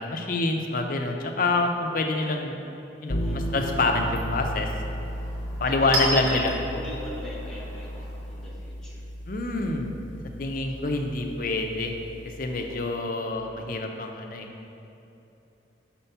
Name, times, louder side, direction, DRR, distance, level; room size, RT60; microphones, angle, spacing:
voice 1, 0.0-2.6 3.0-4.7 5.6-6.5 9.3-10.0 10.4-11.9 12.2-14.5, left 2 dB, 45° left, 3 dB, 0.6 m, -27 dB
Chink clink, 3.0-8.5, right 1 dB, 85° right, 1.4 m, -35 dB
sound 1, 3.1-12.9, equal, 85° left, 0.8 m, -35 dB
voice 2, 3.2-3.6 5.7-9.0 12.5-12.8, equal, 5° left, -5 dB, 1.0 m, -40 dB
5.8 x 4.4 x 5.5 m, 2.8 s
head